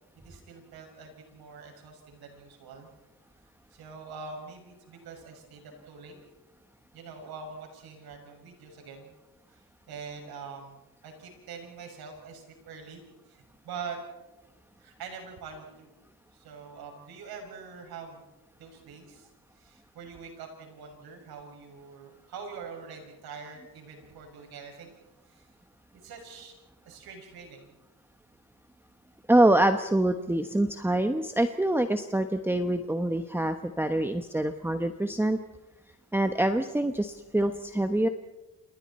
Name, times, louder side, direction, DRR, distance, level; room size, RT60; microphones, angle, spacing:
voice 1, 0.2-2.9 3.7-6.1 6.9-9.1 9.5-13.0 13.3-14.4 14.8-15.9 16.3-18.2 18.6-25.0 25.2-25.5 26.0-26.6 26.8-27.7, right 5 dB, 85° right, 3 dB, 6.6 m, -44 dB
voice 2, 29.3-35.4 36.1-38.1, right 1 dB, 5° right, 7 dB, 1.1 m, -25 dB
28.5 x 27.5 x 4.3 m, 1.0 s
cardioid pair, 95°, 36 cm